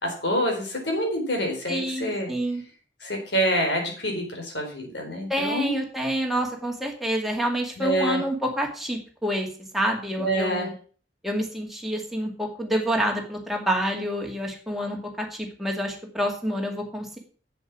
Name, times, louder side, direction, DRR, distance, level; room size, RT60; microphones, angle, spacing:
voice 1, 0.0-2.3 3.0-5.8 7.8-8.2 10.2-10.7, equal, 75° left, 1 dB, 4.4 m, -26 dB
voice 2, 1.7-2.6 5.3-9.5 9.7-10.7 11.2-17.2, equal, ahead, 0 dB, 2.3 m, -28 dB
8.0 x 7.7 x 6.2 m, 0.41 s
head